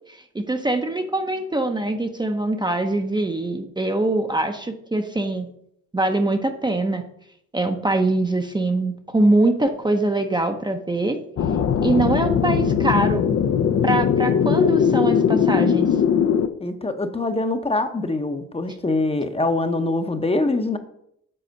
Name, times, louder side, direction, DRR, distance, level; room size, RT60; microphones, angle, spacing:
voice 1, 0.1-5.5 5.9-7.0 7.5-11.2 11.8-13.2 13.8-15.9, right 2 dB, 15° right, 6 dB, 0.7 m, -23 dB
sound 1, 11.4-16.5, left 7 dB, 50° left, 0.7 m, -20 dB
voice 2, 16.6-20.8, left 2 dB, 20° left, 7 dB, 0.8 m, -24 dB
7.8 x 4.2 x 6.4 m, 0.73 s
cardioid pair, 90°, 30 cm